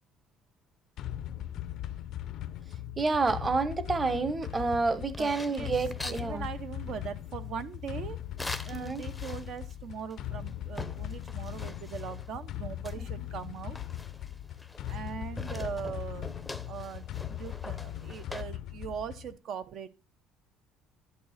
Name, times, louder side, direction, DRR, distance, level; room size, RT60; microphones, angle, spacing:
sound 1, 1.0-19.4, left 12 dB, 45° left, 0.7 m, -39 dB
voice 1, 3.0-6.5 8.7-9.0 12.9-13.0, right 3 dB, 15° right, 1.1 m, -29 dB
sound 2, 4.4-6.3 8.4-9.7 10.1-10.2 10.5-12.3 12.8-15.1 15.4-18.4, left 2 dB, 5° left, 0.8 m, -43 dB
voice 2, 5.2-5.7 6.0-8.2 8.6-13.8 14.9-16.3 16.7-19.9, right 7 dB, 45° right, 0.9 m, -40 dB
11.5 x 9.3 x 5.7 m
cardioid pair, 180°, 0 cm